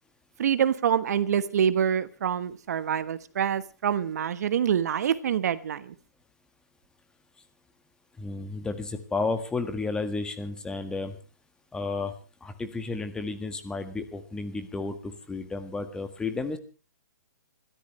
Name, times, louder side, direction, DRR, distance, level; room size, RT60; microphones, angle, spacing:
voice 1, 0.4-5.9, right 8 dB, 60° right, 14 dB, 1.3 m, -26 dB
voice 2, 8.2-11.1 11.7-12.1 12.4-16.6, left 3 dB, 10° left, 8 dB, 1.6 m, -32 dB
27.0 x 13.5 x 3.2 m, 0.35 s
hypercardioid pair, 145°, 10 cm